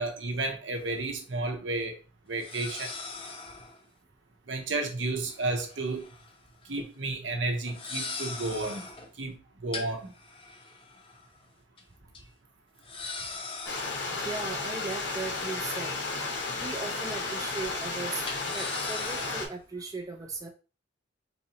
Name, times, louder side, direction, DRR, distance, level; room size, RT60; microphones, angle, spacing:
voice 1, 0.0-2.0 2.3-2.9 4.5-6.1 6.6-8.9 9.2-10.1, right 2 dB, 70° right, 0.8 m, -32 dB
sound 1, 0.8-0.9 2.4-3.8 5.2-6.4 6.6-6.9 7.7-9.1 9.7-11.4 11.8-11.9 12.1-12.2 12.8-14.4 15.3-16.7 17.0-17.2 18.2-19.5, left 4 dB, 30° left, 0.6 m, -41 dB
Stream, 13.7-19.5, left 3 dB, 60° left, 0.8 m, -33 dB
voice 2, 14.1-16.0 16.6-18.3 18.5-20.5, right 3 dB, 20° right, 0.4 m, -37 dB
3.9 x 2.8 x 2.9 m
head